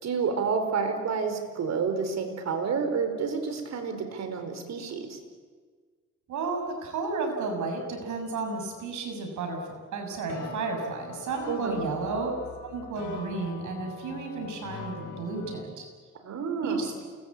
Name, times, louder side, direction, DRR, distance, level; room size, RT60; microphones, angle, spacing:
voice 1, 0.0-5.2 11.5-11.8 16.2-16.9, right 5 dB, 60° right, 7 dB, 4.8 m, -29 dB
voice 2, 6.3-12.3 12.7-15.9 16.6-17.0, right 3 dB, 75° right, 3 dB, 6.9 m, -32 dB
sound 1, 10.3-15.6, left 6 dB, 75° left, 4.3 m, -42 dB
29.0 x 20.5 x 8.7 m, 1.5 s
cardioid pair, 90°, 30 cm